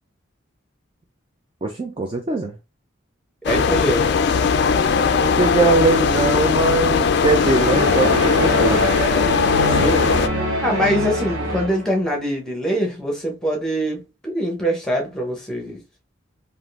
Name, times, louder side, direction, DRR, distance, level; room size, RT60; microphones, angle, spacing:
voice 1, 1.6-2.5 5.2-8.9, right 3 dB, 25° right, 0.3 m, -21 dB
sound 1, 3.4-10.3, left 5 dB, 55° left, 0.3 m, -19 dB
voice 2, 3.5-4.1 9.7-15.8, equal, 5° left, 0.8 m, -24 dB
sound 2, 7.3-12.0, equal, 50° right, 1.5 m, -24 dB
3.6 x 2.5 x 2.3 m
head